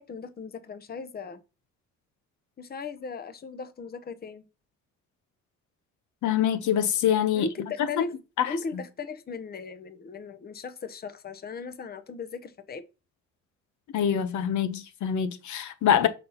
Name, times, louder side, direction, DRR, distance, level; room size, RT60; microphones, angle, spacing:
voice 1, 0.0-1.4 2.6-4.5 7.3-8.2 8.4-12.8, left 4 dB, 30° left, 0.8 m, -37 dB
voice 2, 6.2-7.5 7.8-7.9 8.4-8.5 13.9-16.1, left 9 dB, 75° left, 0.8 m, -25 dB
5.3 x 4.1 x 5.5 m
cardioid pair, 90°, 30 cm